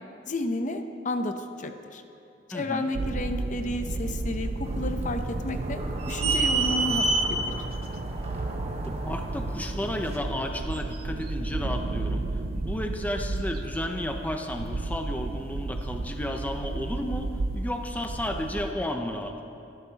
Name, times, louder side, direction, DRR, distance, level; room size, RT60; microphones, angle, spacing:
voice 1, 0.3-2.0 2.5-5.8 6.1-7.4, left 1 dB, 45° left, 7 dB, 0.7 m, -31 dB
voice 2, 2.5-2.9 8.8-12.3 12.5-19.4, left 1 dB, 10° left, 4 dB, 0.6 m, -33 dB
sound 1, 2.9-18.7, right 2 dB, 55° right, 0.5 m, -33 dB
sound 2, 4.6-10.2, right 3 dB, 40° right, 1.1 m, -30 dB
23.5 x 11.0 x 2.9 m, 2.7 s
head